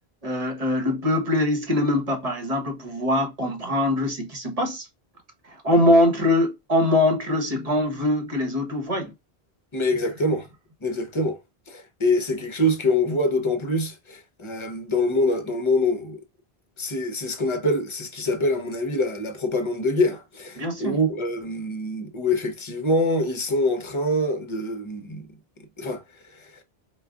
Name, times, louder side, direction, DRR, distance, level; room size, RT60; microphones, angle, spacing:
voice 1, 0.2-4.9 5.6-9.1 20.6-21.0, left 1 dB, 40° right, 1.0 m, -22 dB
voice 2, 9.7-10.5 10.8-11.4 11.7-16.2 16.8-25.3 25.8-26.0 26.3-26.6, left 1 dB, 30° left, 0.7 m, -25 dB
4.7 x 2.3 x 2.4 m
omnidirectional pair, 1.0 m